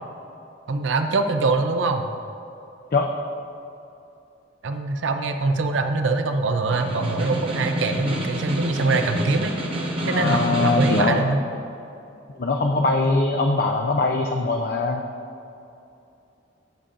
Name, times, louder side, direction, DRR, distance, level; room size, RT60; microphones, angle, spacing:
voice 1, 0.7-2.1 4.6-9.5 10.1-11.4, right 3 dB, 80° right, 6 dB, 0.5 m, -23 dB
Snare drum, 6.6-11.2, equal, 30° right, 1.0 m, -28 dB
voice 2, 10.0-11.3 12.4-15.0, left 3 dB, 50° left, 2 dB, 0.4 m, -22 dB
14.0 x 6.8 x 2.5 m, 2.7 s
head